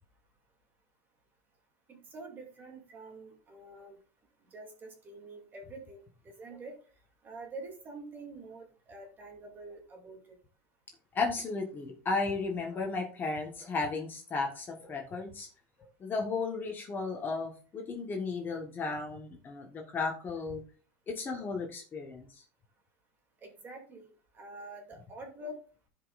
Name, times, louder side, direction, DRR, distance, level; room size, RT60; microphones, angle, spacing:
voice 1, 1.9-4.0 4.4-6.0 6.2-6.8 7.2-10.4 23.4-24.1 24.3-25.6, right 2 dB, 25° right, 2 dB, 2.6 m, -46 dB
voice 2, 11.1-15.5 16.0-20.6 21.1-22.4, left 4 dB, 25° left, 1 dB, 1.4 m, -34 dB
15.0 x 5.2 x 2.5 m, 0.38 s
supercardioid pair, 155°, 8 cm